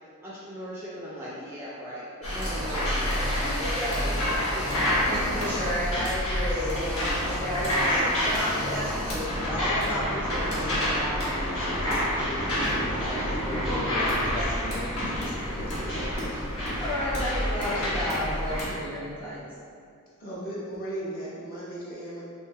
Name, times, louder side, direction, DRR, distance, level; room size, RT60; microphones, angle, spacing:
voice 1, 0.2-4.7 13.7-14.0, equal, 10° right, -8 dB, 0.3 m, -37 dB
sound 1, 2.2-18.6, equal, 70° left, 1.1 m, -28 dB
voice 2, 5.1-15.9 16.1-19.4, equal, 10° left, -9 dB, 0.7 m, -33 dB
voice 3, 20.2-22.2, right 1 dB, 40° left, -7 dB, 0.8 m, -36 dB
3.2 x 2.7 x 3.3 m, 2.4 s
head